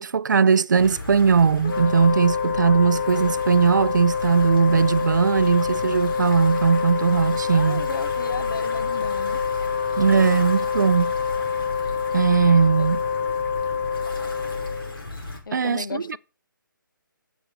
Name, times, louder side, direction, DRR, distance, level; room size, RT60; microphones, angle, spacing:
voice 1, 0.0-7.9 10.0-11.1 12.1-13.0 15.5-16.2, right 6 dB, 60° right, 0.5 m, -19 dB
sound 1, 0.7-15.4, left 2 dB, 85° left, 5.6 m, -36 dB
Wind instrument woodwind instrument, 1.6-15.0, left 6 dB, 25° left, 0.5 m, -26 dB
voice 2, 7.5-9.4 12.8-12.9 13.2-13.3 15.5-16.2, left 5 dB, 70° left, 0.9 m, -35 dB
9.0 x 7.9 x 7.3 m
hypercardioid pair, 170°, 11 cm